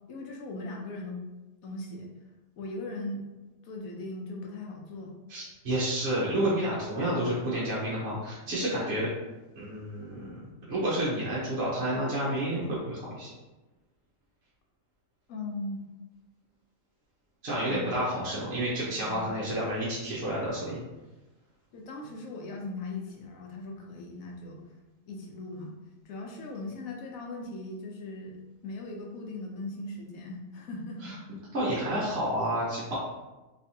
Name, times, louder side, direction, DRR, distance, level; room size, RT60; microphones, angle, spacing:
voice 1, 0.1-1.2 1.6-2.1 2.6-3.2 3.6-5.2 15.3-15.8 17.7-17.8 19.1-19.3 21.7-24.6 25.1-25.7 26.0-31.2, left 2 dB, 85° left, 0 dB, 1.1 m, -39 dB
voice 2, 5.3-9.1 9.6-10.4 10.7-13.3 17.4-20.8 31.0-31.1 31.5-33.0, right 1 dB, 50° right, -7 dB, 1.1 m, -30 dB
3.3 x 3.0 x 2.8 m, 1.1 s
omnidirectional pair, 1.4 m